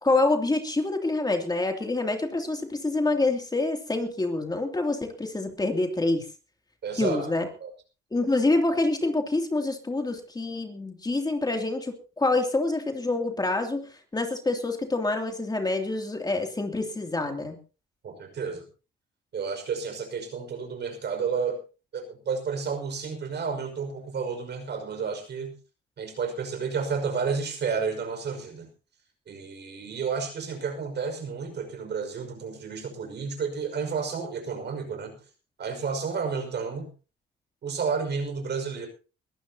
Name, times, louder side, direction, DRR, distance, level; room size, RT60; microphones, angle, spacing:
voice 1, 0.0-6.2 7.0-7.5 8.1-13.8 14.1-17.6, left 2 dB, 20° left, 4 dB, 2.8 m, -26 dB
voice 2, 6.8-7.3 7.6-7.7 18.0-18.7 19.3-21.6 21.9-25.6 26.0-28.7 29.3-35.2 35.6-36.9 37.6-38.9, right 5 dB, 60° right, 6 dB, 5.6 m, -31 dB
22.0 x 14.5 x 2.9 m, 0.34 s
cardioid pair, 90°, 20 cm